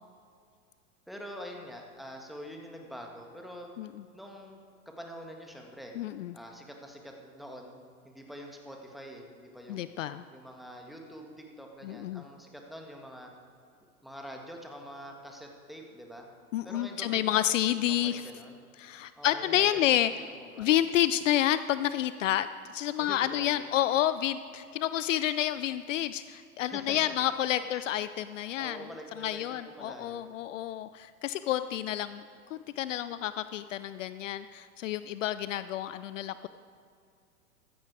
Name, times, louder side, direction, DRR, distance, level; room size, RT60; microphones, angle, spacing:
voice 1, 1.1-3.7 4.1-4.6 4.8-5.9 6.3-7.8 8.0-9.9 10.3-13.3 14.0-16.3 16.6-17.5 18.0-18.7 19.2-20.0 20.3-20.7 23.0-23.7 26.6-27.1 27.7-27.8 28.6-30.3, equal, ahead, 1 dB, 1.7 m, -45 dB
voice 2, 6.0-6.3 9.7-10.2 11.8-12.2 16.5-18.2 18.8-20.1 20.6-22.5 22.7-28.8 29.2-32.2 32.5-36.5, left 12 dB, 60° left, 13 dB, 0.5 m, -29 dB
15.5 x 13.0 x 4.8 m, 2.3 s
hypercardioid pair, 105°, 44 cm